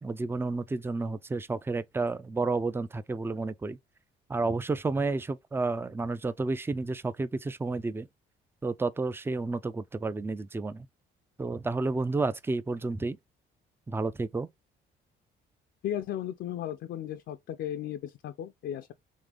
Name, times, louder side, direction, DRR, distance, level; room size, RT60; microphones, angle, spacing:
voice 1, 0.0-3.8 4.3-8.1 8.6-10.9 11.4-13.2 13.9-14.5, right 3 dB, 10° right, 0.4 m, -31 dB
voice 2, 15.8-18.9, left 11 dB, 70° left, 0.5 m, -35 dB
3.7 x 3.3 x 3.3 m
cardioid pair, 90°, 20 cm